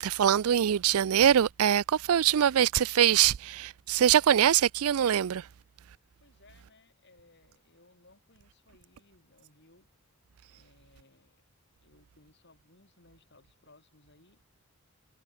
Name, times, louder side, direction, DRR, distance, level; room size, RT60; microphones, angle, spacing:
voice 1, 0.0-5.4, right 9 dB, 85° right, 0.4 m, -23 dB
voice 2, 6.2-9.9 10.5-11.4 11.8-14.4, left 2 dB, 55° left, 6.5 m, -62 dB
head